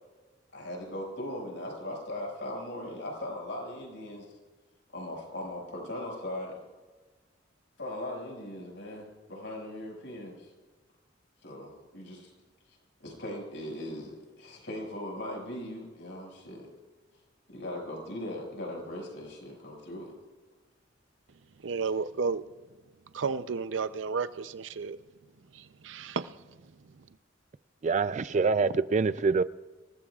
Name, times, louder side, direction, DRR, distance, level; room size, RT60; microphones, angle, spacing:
voice 1, 0.5-4.3 4.9-6.6 7.8-10.5 11.4-12.3 13.0-16.7 17.5-20.1, left 1 dB, 70° left, 5.9 m, -39 dB
voice 2, 21.6-22.4 23.1-25.0 25.5-26.4 27.0-27.1, right 5 dB, 85° right, 0.6 m, -32 dB
voice 3, 27.8-29.4, right 4 dB, 40° right, 0.4 m, -25 dB
27.0 x 19.0 x 2.4 m
head